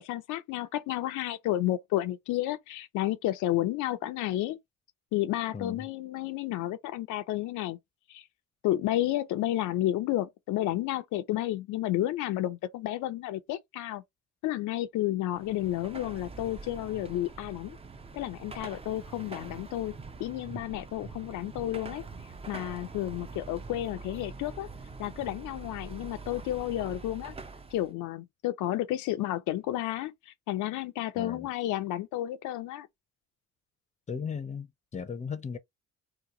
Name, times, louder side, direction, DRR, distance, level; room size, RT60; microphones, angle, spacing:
voice 1, 0.0-4.6 5.1-7.8 8.1-8.2 8.6-14.0 14.4-17.8 18.1-19.9 20.2-22.0 22.5-24.7 25.0-27.3 27.7-32.9, left 14 dB, 85° left, 0.5 m, -31 dB
voice 2, 5.5-5.9 31.1-31.5 34.1-35.6, left 6 dB, 25° left, 0.6 m, -36 dB
Car passing by / Traffic noise roadway noise / Engine, 15.3-27.9, right 4 dB, 20° right, 0.5 m, -44 dB
2.9 x 2.3 x 3.6 m
cardioid pair, 90°, 30 cm